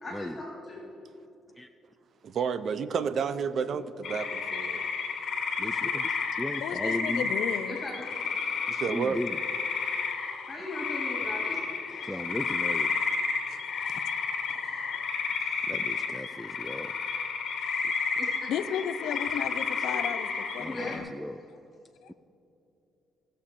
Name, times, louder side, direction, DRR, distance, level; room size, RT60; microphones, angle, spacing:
voice 1, 0.0-0.8 7.7-8.1 10.5-11.6 11.9-12.2 14.5-14.9 15.4-15.5 18.2-18.5 19.8-20.0 20.7-21.0, left 2 dB, 30° left, -3 dB, 2.8 m, -39 dB
voice 2, 2.2-4.9 8.7-9.2, right 6 dB, 55° right, 13 dB, 0.6 m, -31 dB
sound 1, 4.0-21.0, left 5 dB, 65° left, 1.4 m, -31 dB
voice 3, 5.6-7.3 8.9-9.4 12.0-12.9 15.7-17.0 20.6-21.4, left 1 dB, 5° left, 8 dB, 0.4 m, -36 dB
voice 4, 6.6-7.8 13.5-13.6 13.9-14.0 18.5-21.1, left 9 dB, 80° left, 12 dB, 0.5 m, -34 dB
18.5 x 6.7 x 3.8 m, 2.8 s
cardioid pair, 90°, 0 cm